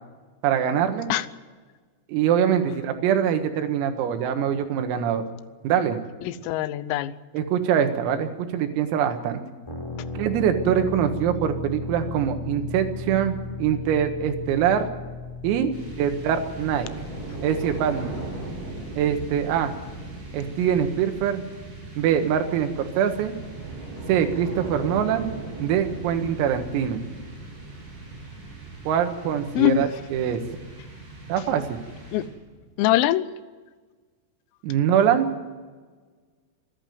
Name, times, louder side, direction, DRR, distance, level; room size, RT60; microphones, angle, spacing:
voice 1, 0.4-1.1 2.1-5.2 5.6-6.0 7.3-9.4 10.2-14.9 15.4-16.9 17.4-18.2 19.0-19.8 20.3-21.4 22.0-23.4 24.1-25.3 25.6-27.0 28.9-30.4 31.3-31.8 34.6-35.3, right 9 dB, 90° right, 7 dB, 4.3 m, -23 dB
voice 2, 6.2-7.1 29.6-29.9 32.1-32.3 32.8-33.3, left 13 dB, 90° left, 15 dB, 3.5 m, -22 dB
sound 1, 9.7-21.3, left 2 dB, 5° left, 4.8 m, -37 dB
sound 2, 15.7-32.7, right 2 dB, 40° right, 9.5 m, -38 dB
26.5 x 11.5 x 9.4 m, 1.4 s
omnidirectional pair, 5.9 m